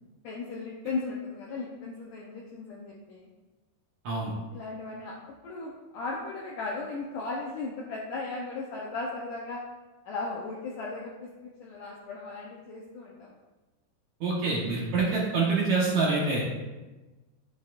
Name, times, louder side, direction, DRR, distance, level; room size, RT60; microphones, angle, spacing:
voice 1, 0.2-3.3 4.5-5.1 5.4-9.6 10.1-13.4, left 3 dB, 75° left, -3 dB, 1.9 m, -36 dB
voice 2, 14.2-16.4, right 3 dB, 65° right, -5 dB, 2.0 m, -26 dB
10.0 x 8.4 x 2.5 m, 1.2 s
omnidirectional pair, 4.7 m